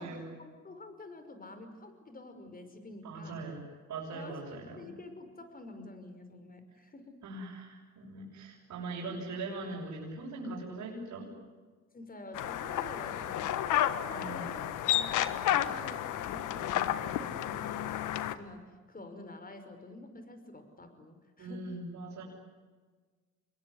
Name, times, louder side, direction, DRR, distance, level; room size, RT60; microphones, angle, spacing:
voice 1, 0.0-3.4 4.1-4.5 4.7-7.2 11.9-18.6 18.9-21.7, left 2 dB, 30° left, 8 dB, 5.7 m, -48 dB
voice 2, 3.0-3.6 3.9-4.9 7.2-11.3 14.1-14.5 17.5-17.9 21.4-22.2, right 2 dB, 75° right, -5 dB, 7.2 m, -41 dB
sound 1, 12.3-18.3, left 12 dB, 90° left, 1.4 m, -31 dB
26.5 x 22.0 x 9.8 m, 1.4 s
cardioid pair, 90°, 30 cm